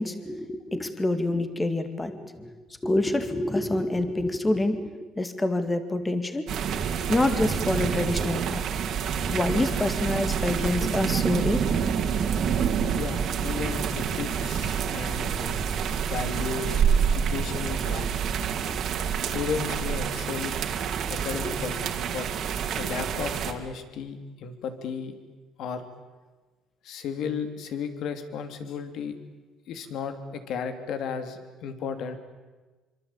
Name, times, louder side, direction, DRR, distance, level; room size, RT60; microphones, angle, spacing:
voice 1, 0.0-2.5 2.8-6.5 7.1-8.6 9.3-11.6 21.4-21.6, left 2 dB, 10° left, 9 dB, 2.2 m, -27 dB
sound 1, 6.5-23.5, right 7 dB, 50° right, 2.9 m, -27 dB
voice 2, 12.9-15.6 16.0-18.3 19.3-20.5 21.1-22.3 22.8-25.2 25.6-25.8 26.8-29.2 29.7-32.2, left 6 dB, 60° left, 9 dB, 3.1 m, -34 dB
26.5 x 25.0 x 8.9 m, 1.2 s
cardioid pair, 140°, 0 cm